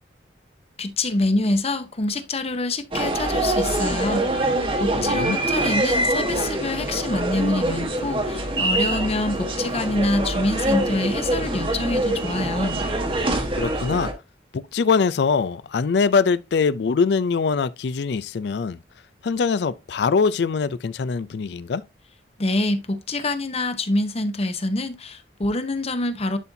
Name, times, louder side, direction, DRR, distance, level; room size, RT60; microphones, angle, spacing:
voice 1, 0.8-4.5 4.8-12.8 22.4-26.4, left 2 dB, 35° left, 0.9 m, -26 dB
sound 1, 2.9-14.1, right 1 dB, 30° right, 1.2 m, -24 dB
voice 2, 4.9-5.4 13.6-14.1 14.5-18.8 19.2-21.8, left 5 dB, 70° left, 0.4 m, -22 dB
11.0 x 4.3 x 2.7 m
head